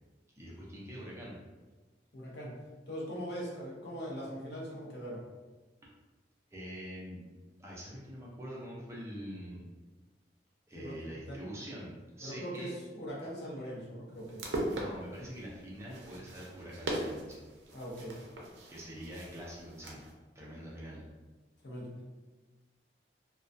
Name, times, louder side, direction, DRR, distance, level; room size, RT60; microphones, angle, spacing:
voice 1, 0.4-1.4 6.5-7.2 7.6-9.7 10.7-12.7 14.7-17.4 18.7-20.1 20.3-21.0, equal, 15° right, -5 dB, 0.4 m, -44 dB
voice 2, 2.1-2.6 2.9-5.2 10.7-11.0 11.3-11.4 12.2-14.6 17.7-18.2 21.6-21.9, equal, 65° left, -4 dB, 0.7 m, -41 dB
sound 1, 14.1-20.1, right 1 dB, 80° right, 0.5 m, -40 dB
2.2 x 2.2 x 2.5 m, 1.2 s
head